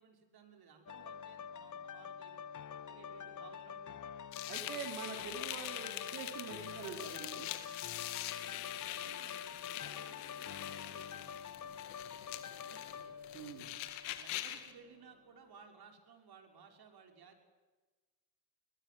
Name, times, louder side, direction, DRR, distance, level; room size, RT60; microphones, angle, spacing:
voice 1, 0.0-2.5 2.9-4.1 4.6-4.9 8.9-13.1 13.6-13.8 14.2-17.4, right 6 dB, 50° right, 4 dB, 5.7 m, -60 dB
sound 1, 0.9-14.6 15.0-15.2, left 7 dB, 40° left, 1.4 m, -47 dB
sound 2, 4.3-14.7, left 14 dB, 85° left, 2.5 m, -44 dB
voice 2, 4.5-7.5 13.3-13.7, right 7 dB, 90° right, 3 dB, 3.9 m, -45 dB
29.5 x 21.5 x 7.8 m, 1.3 s
supercardioid pair, 85°, 48 cm